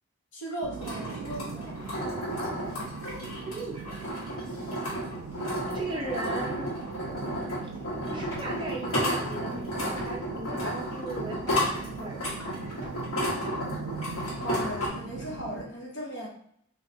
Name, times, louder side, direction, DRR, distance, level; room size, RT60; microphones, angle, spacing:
voice 1, 0.3-1.8 14.3-16.3, equal, 60° left, -2 dB, 0.9 m, -37 dB
sound 1, 0.6-15.6, right 5 dB, 85° right, 0.3 m, -40 dB
sound 2, 0.8-14.9, equal, 80° left, 1.4 m, -32 dB
voice 2, 3.5-4.1 5.7-6.7 8.0-12.2, right 3 dB, 20° right, -1 dB, 0.5 m, -37 dB
sound 3, 8.2-8.5 9.8-10.4 11.5-11.7 12.2-13.0, equal, 15° left, 1.3 m, -46 dB
3.2 x 2.7 x 2.7 m, 0.68 s
head